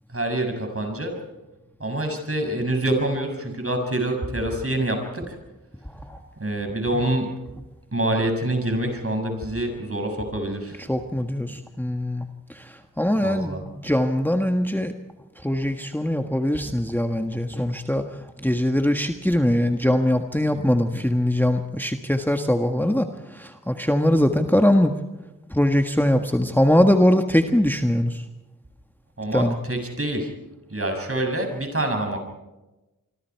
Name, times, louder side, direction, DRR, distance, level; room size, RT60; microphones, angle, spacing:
voice 1, 0.1-1.2 1.8-5.4 6.4-7.3 7.9-10.8 13.2-13.6 29.2-30.3 30.7-32.2, right 1 dB, 40° right, 4 dB, 6.7 m, -26 dB
voice 2, 10.8-12.2 12.5-14.9 15.4-18.0 18.4-24.9 25.5-28.2 29.3-29.6, left 1 dB, 5° left, 5 dB, 1.6 m, -22 dB
26.5 x 24.5 x 4.7 m, 1.0 s
cardioid pair, 40°, 33 cm